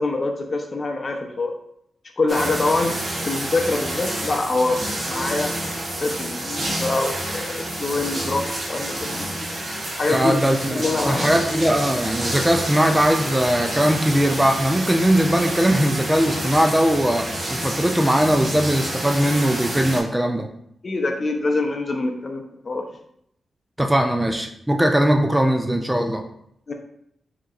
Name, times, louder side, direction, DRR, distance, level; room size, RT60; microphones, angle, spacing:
voice 1, 0.0-1.5 2.2-5.5 6.0-9.3 10.0-10.4 10.7-11.4 20.8-22.9 26.7-26.8, left 2 dB, 40° left, 3 dB, 0.6 m, -25 dB
sound 1, 2.3-20.0, right 1 dB, 50° right, 1.1 m, -28 dB
voice 2, 10.1-20.5 23.8-26.2, equal, 10° right, 5 dB, 0.3 m, -20 dB
5.0 x 2.9 x 2.4 m, 0.73 s
cardioid pair, 80°, 0 cm